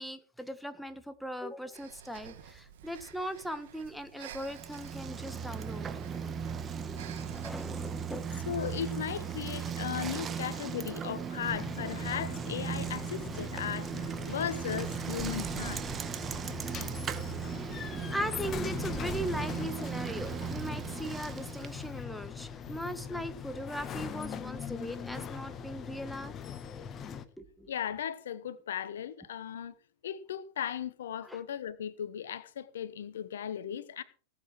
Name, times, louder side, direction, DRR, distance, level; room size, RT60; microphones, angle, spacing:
voice 1, 0.0-5.9 6.1-6.4 6.9-8.3 18.1-26.3 27.4-27.7 31.2-31.4, equal, ahead, 1.6 m, -39 dB
Breathing, 1.7-9.4, right 10 dB, 65° right, 2.3 m, -52 dB
Bicycle, 4.4-22.0, right 7 dB, 25° right, 1.5 m, -37 dB
voice 2, 8.4-15.8 27.7-29.8 30.0-34.0, left 9 dB, 75° left, 1.0 m, -37 dB
sound 1, 11.5-27.2, left 7 dB, 30° left, 1.5 m, -41 dB
18.5 x 8.0 x 4.7 m
hypercardioid pair, 100°, 0 cm